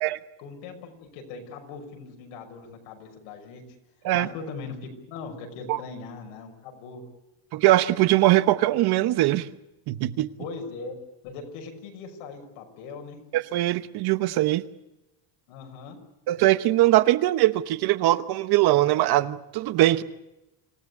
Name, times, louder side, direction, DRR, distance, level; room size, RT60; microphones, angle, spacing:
voice 1, 0.4-3.6 4.1-7.1 10.4-10.9 11.2-13.2 15.5-16.0, left 4 dB, 90° left, 6.2 m, -40 dB
voice 2, 7.5-9.5 9.9-10.3 13.3-14.6 16.3-20.0, right 16 dB, 50° right, 1.0 m, -21 dB
26.5 x 17.0 x 8.4 m
cardioid pair, 175°, 50 cm